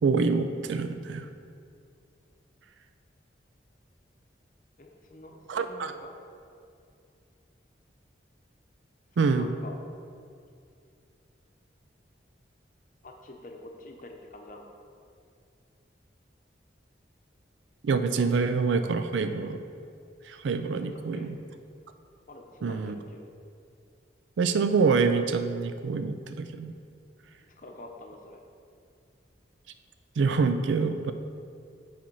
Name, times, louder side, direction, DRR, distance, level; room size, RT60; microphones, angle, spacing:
voice 1, 0.0-1.3 5.5-5.9 9.2-9.5 17.8-19.6 20.3-21.3 22.6-23.0 24.4-26.7 30.2-31.1, right 4 dB, 85° right, 9 dB, 0.4 m, -26 dB
voice 2, 4.8-6.2 9.1-9.8 13.0-14.7 20.9-21.3 22.3-23.2 27.6-28.4, left 1 dB, 45° left, 2 dB, 0.8 m, -46 dB
7.6 x 4.3 x 5.4 m, 2.3 s
head